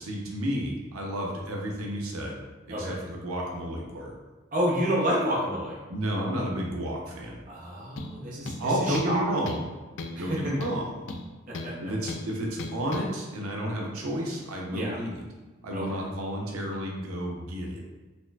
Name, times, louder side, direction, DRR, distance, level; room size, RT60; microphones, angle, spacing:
voice 1, 0.0-2.4 2.8-4.1 5.9-7.4 8.6-9.6 10.2-10.9 11.8-15.2 15.6-17.8, equal, 80° right, -1 dB, 0.6 m, -31 dB
voice 2, 4.5-5.8 7.5-9.4 11.5-11.9 14.7-15.0 15.7-16.0, equal, 40° right, -4 dB, 0.6 m, -29 dB
sound 1, 8.0-8.2 8.5-9.2 9.5-9.7 10.0-10.2 10.6-11.7 12.1-12.3 12.6-13.1, left 2 dB, 55° left, 0.3 m, -37 dB
4.2 x 2.5 x 2.2 m, 1.2 s
head